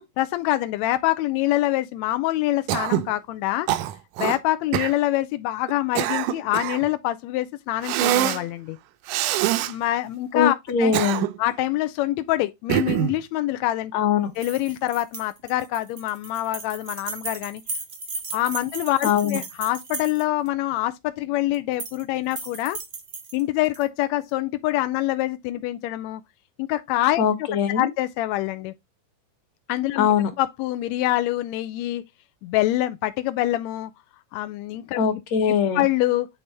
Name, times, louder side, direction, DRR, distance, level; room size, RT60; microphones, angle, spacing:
voice 1, 0.2-3.7 4.2-8.8 9.6-10.9 11.4-13.9 14.4-17.6 18.3-22.8 23.3-26.2 26.6-27.5 27.8-28.7 29.7-30.1 30.4-32.0 32.4-33.9 34.3-35.0 35.7-36.3, left 15 dB, 80° left, 1.6 m, -25 dB
Cough, 2.7-3.1 3.7-4.4 4.7-5.0 5.7-6.9 7.8-8.4 9.1-9.7 10.7-11.5 12.7-13.2, right 13 dB, 85° right, 2.1 m, -24 dB
voice 2, 10.3-11.3 13.9-14.3 19.0-19.4 27.2-27.9 30.0-30.3 35.0-35.8, left 7 dB, 60° left, 2.5 m, -21 dB
sound 1, 14.4-20.5 21.5-22.0 22.3-23.8, right 4 dB, 40° right, 0.9 m, -36 dB
8.6 x 4.0 x 3.3 m
omnidirectional pair, 3.6 m